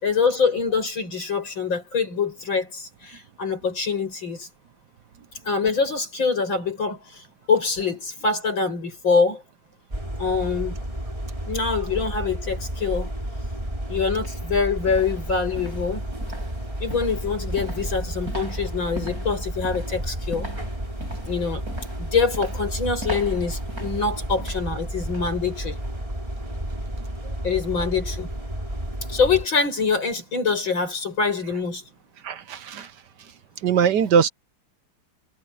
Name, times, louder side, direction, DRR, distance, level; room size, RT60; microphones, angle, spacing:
voice 1, 0.0-4.5 5.4-9.4 10.2-10.8 11.4-13.1 13.9-16.1 16.8-20.5 21.2-21.6 22.0-25.8 27.4-28.3 29.1-31.8, left 5 dB, 80° left, 7.6 m, -24 dB
sound 1, 9.9-29.5, right 1 dB, 15° right, 5.2 m, -32 dB
sound 2, 13.5-13.6 14.1-25.4 25.7-26.0 26.4-26.5, right 1 dB, 50° right, 8.7 m, -40 dB
voice 2, 32.2-32.9 33.6-34.3, right 7 dB, 65° right, 1.4 m, -21 dB
omnidirectional pair, 2.1 m